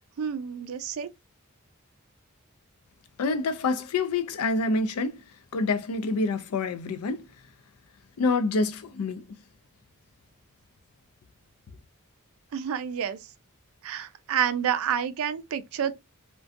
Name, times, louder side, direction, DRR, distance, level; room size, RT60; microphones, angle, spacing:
voice 1, 0.2-1.1 12.5-13.2 13.8-15.9, right 8 dB, 70° right, 0.3 m, -29 dB
voice 2, 3.2-5.2 5.5-7.3 8.2-9.3, left 3 dB, 85° left, 0.4 m, -27 dB
2.5 x 2.2 x 2.4 m
head